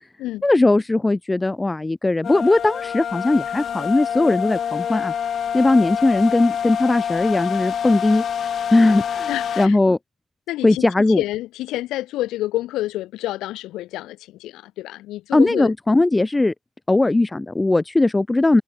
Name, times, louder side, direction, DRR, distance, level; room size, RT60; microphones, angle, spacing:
voice 1, 0.4-5.1 5.5-8.2 8.7-10.0 10.6-11.2 15.3-16.5 16.9-18.6, left 2 dB, 20° left, 1.6 m, -18 dB
sound 1, 2.2-9.7, left 8 dB, 60° left, 0.8 m, -26 dB
voice 2, 9.3-9.8 10.5-15.7, left 16 dB, 80° left, 3.7 m, -28 dB
hypercardioid pair, 50°, 0 cm